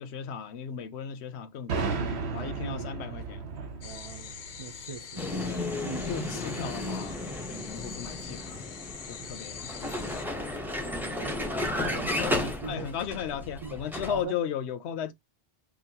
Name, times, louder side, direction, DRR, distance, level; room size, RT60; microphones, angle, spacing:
voice 1, 0.0-2.0 2.3-3.5 5.4-7.2 7.5-8.6 9.1-10.2 11.8-11.9 12.2-15.1, left 8 dB, 85° left, 0.9 m, -36 dB
sound 1, 1.7-5.4, right 4 dB, 80° right, 1.2 m, -34 dB
voice 2, 2.6-2.9 3.8-5.3 5.8-6.1 9.2-9.4 11.1-11.4 11.8-12.2 12.6-12.9 13.6-13.8 14.1-14.4, right 5 dB, 50° right, 0.4 m, -41 dB
sound 2, 3.8-10.2, left 8 dB, 55° left, 0.7 m, -44 dB
Vehicle, 5.2-14.2, left 1 dB, ahead, 0.7 m, -33 dB
5.1 x 2.3 x 2.8 m
omnidirectional pair, 1.1 m